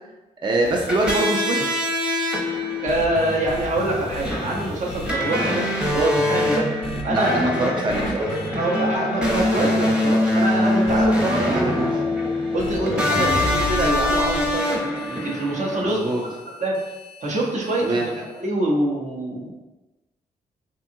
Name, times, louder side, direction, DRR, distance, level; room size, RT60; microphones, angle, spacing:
voice 1, 0.4-1.8 7.1-8.3 11.4-11.9 13.2-13.4 15.8-16.2 17.8-18.1, right 2 dB, 30° right, 0 dB, 0.4 m, -24 dB
sound 1, 0.7-15.9, left 1 dB, 5° right, 0.8 m, -24 dB
voice 2, 2.8-5.6 5.9-6.7 7.0-7.5 8.6-12.1 12.5-14.8 15.1-16.3 16.6-16.8 17.2-19.5, right 1 dB, 55° right, -3 dB, 0.8 m, -25 dB
sound 2, 2.9-5.5 5.8-6.4 6.8-7.4 7.9-8.5 9.2-9.8 10.9-11.4 12.6-18.4, left 2 dB, 40° left, 0.4 m, -33 dB
2.8 x 2.3 x 2.6 m, 1.1 s
cardioid pair, 60°, 15 cm